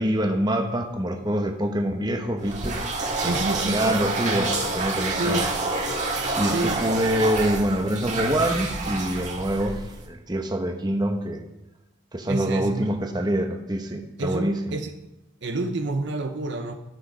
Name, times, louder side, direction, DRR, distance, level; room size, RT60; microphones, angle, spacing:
voice 1, 0.0-2.8 3.2-5.5 6.4-11.4 12.1-14.6, right 1 dB, 20° right, 3 dB, 1.0 m, -25 dB
sound 1, 2.4-10.1, right 3 dB, 40° right, 1.7 m, -28 dB
voice 2, 3.1-3.9 5.1-5.5 6.5-6.8 12.3-12.9 14.2-14.9 15.4-16.7, right 2 dB, 60° right, 6 dB, 0.8 m, -28 dB
13.5 x 6.4 x 4.9 m, 0.95 s
head